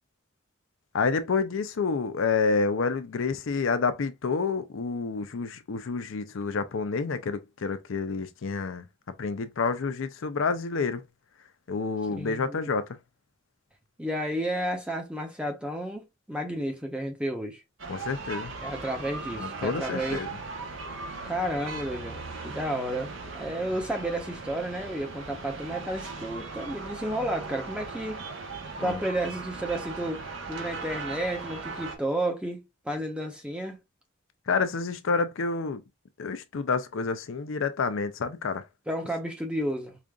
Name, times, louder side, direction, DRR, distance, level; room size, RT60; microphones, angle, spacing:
voice 1, 0.9-8.8 9.2-11.0 11.7-12.9 17.9-18.5 19.4-20.3 28.8-29.0 34.5-35.8 36.2-38.6, left 4 dB, 75° left, 0.5 m, -28 dB
voice 2, 12.1-12.7 14.0-17.6 18.6-20.2 21.2-28.2 28.8-33.8 38.9-40.0, right 1 dB, 5° right, 0.7 m, -32 dB
sound 1, 17.8-32.0, right 3 dB, 70° right, 0.9 m, -38 dB
4.9 x 2.5 x 2.3 m
head